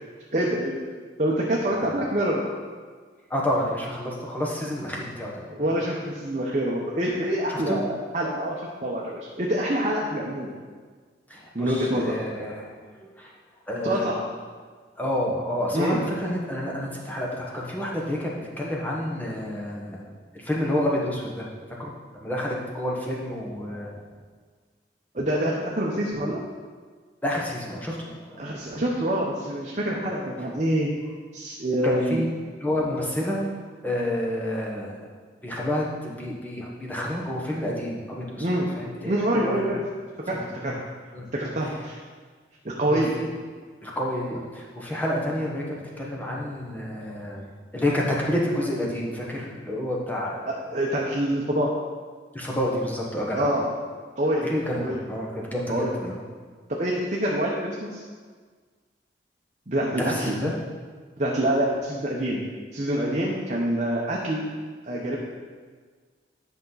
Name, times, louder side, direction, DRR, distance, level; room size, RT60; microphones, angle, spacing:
voice 1, 0.3-0.9 1.2-2.5 5.5-10.5 11.5-12.1 13.8-14.1 15.7-16.0 25.1-26.4 28.4-30.9 31.3-32.2 38.4-38.7 39.0-39.8 40.3-40.4 40.6-40.8 41.3-42.0 42.6-43.1 50.7-51.7 53.3-53.8 54.2-54.5 54.7-55.0 55.7-55.9 56.8-58.0 59.7-60.3 61.2-62.4 62.7-64.5 64.8-65.2, right 1 dB, 40° right, -3 dB, 0.9 m, -26 dB
voice 2, 3.3-5.7 7.5-7.8 11.3-12.8 13.2-13.3 13.7-14.1 15.0-20.1 20.3-21.5 21.8-21.9 22.2-23.9 27.2-28.6 31.8-32.3 32.6-33.5 33.8-34.9 35.4-38.5 38.8-39.7 40.3-40.7 41.1-41.3 42.8-43.3 43.8-47.5 47.7-50.5 52.3-53.6 54.4-56.2 60.1-60.5, left 1 dB, 10° left, -4 dB, 1.2 m, -29 dB
10.5 x 5.8 x 4.0 m, 1.6 s
head